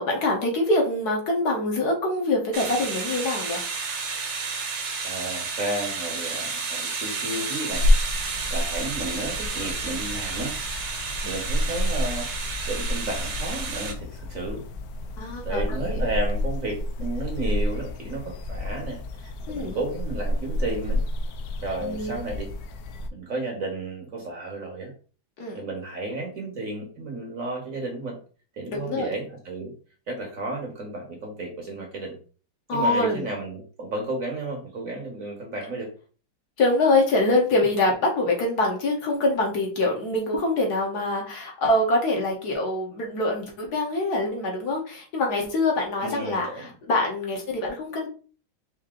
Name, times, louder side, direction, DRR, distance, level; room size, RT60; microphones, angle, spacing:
voice 1, 0.0-3.6 15.2-16.0 19.5-19.8 21.8-22.2 25.4-25.6 28.7-29.1 32.7-33.2 36.6-48.1, left 2 dB, 55° left, 0 dB, 1.4 m, -24 dB
sound 1, 2.5-13.9, right 4 dB, 65° right, 1.6 m, -31 dB
voice 2, 5.0-7.9 8.5-10.6 11.2-12.3 12.7-14.6 15.4-21.0 21.6-22.5 23.1-24.9 25.5-28.2 28.6-29.7 30.1-32.2 32.7-35.9 46.0-46.7, right 2 dB, 50° right, 1 dB, 1.2 m, -32 dB
sound 2, 7.7-23.1, left 1 dB, 80° left, 0.8 m, -29 dB
4.7 x 2.7 x 3.6 m, 0.39 s
omnidirectional pair, 2.2 m